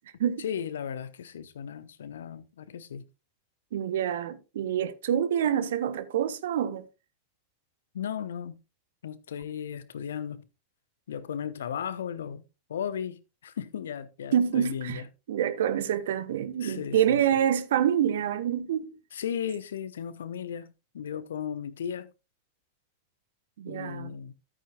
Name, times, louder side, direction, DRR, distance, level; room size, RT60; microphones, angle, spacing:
voice 1, 0.4-3.1 7.9-8.6 9.0-10.4 11.1-12.4 12.7-15.1 16.6-17.4 19.1-22.1 23.6-24.3, left 8 dB, 65° left, 0.8 m, -36 dB
voice 2, 3.7-6.9 14.3-15.0 15.3-18.9 23.6-24.1, right 9 dB, 60° right, 0.9 m, -27 dB
13.5 x 8.8 x 2.3 m
figure-of-eight pair, 90°, 0 cm